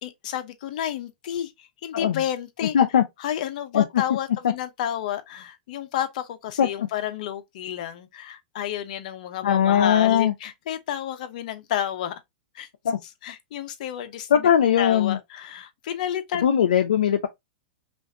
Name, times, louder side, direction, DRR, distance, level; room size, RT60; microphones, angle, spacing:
voice 1, 0.0-2.8 3.2-12.2 12.5-12.7 13.2-14.5 14.8-16.5, left 10 dB, 60° left, 0.8 m, -31 dB
voice 2, 9.4-10.3 12.8-13.0 14.3-15.2 16.4-17.3, left 9 dB, 85° left, 0.6 m, -19 dB
5.5 x 2.6 x 2.7 m
hypercardioid pair, 135°, 5 cm